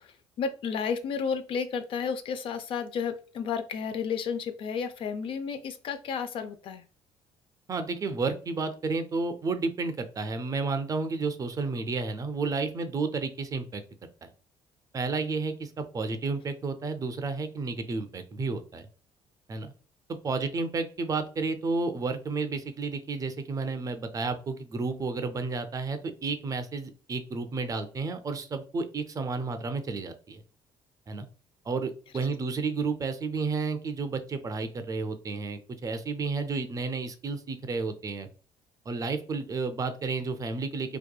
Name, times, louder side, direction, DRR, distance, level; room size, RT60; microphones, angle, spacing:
voice 1, 0.0-6.9, left 6 dB, 60° left, 9 dB, 0.4 m, -32 dB
voice 2, 7.7-13.8 14.2-14.3 14.9-18.9 19.5-19.7 20.1-30.4 31.1-31.3 31.7-38.3 38.9-41.0, right 4 dB, 35° right, 8 dB, 0.4 m, -31 dB
2.7 x 2.2 x 2.2 m, 0.39 s
supercardioid pair, 85°, 10 cm